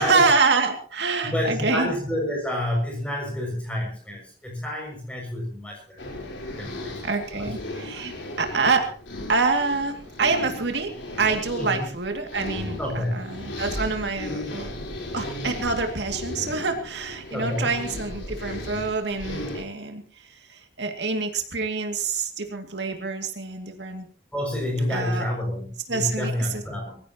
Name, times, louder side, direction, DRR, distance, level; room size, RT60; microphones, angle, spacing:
voice 1, 0.0-1.9 7.0-8.1 8.4-8.9 9.3-10.9 11.2-14.7 15.1-20.0 20.5-24.1 24.9-25.3 25.9-26.6, right 4 dB, 75° right, 4 dB, 2.4 m, -26 dB
voice 2, 1.2-6.0 6.6-7.0 7.4-7.5 11.6-11.9 12.8-13.2 17.3-17.7 24.3-27.0, left 1 dB, 5° left, 0 dB, 6.5 m, -29 dB
sound 1, 6.0-19.6, left 1 dB, 90° left, 4.1 m, -36 dB
24.0 x 15.5 x 3.0 m, 0.41 s
head